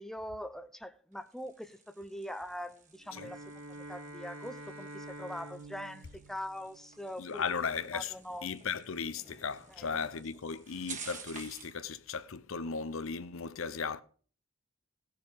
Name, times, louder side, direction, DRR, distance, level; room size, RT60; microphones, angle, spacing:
voice 1, 0.0-7.4 7.9-8.6 9.7-10.0, equal, ahead, 0.5 m, -43 dB
sound 1, 1.1-11.8, right 6 dB, 35° right, 1.8 m, -52 dB
Bowed string instrument, 3.0-7.4, right 1 dB, 75° right, 2.2 m, -48 dB
voice 2, 7.2-8.1 8.4-14.0, left 5 dB, 65° left, 0.7 m, -36 dB
16.5 x 6.8 x 5.1 m
head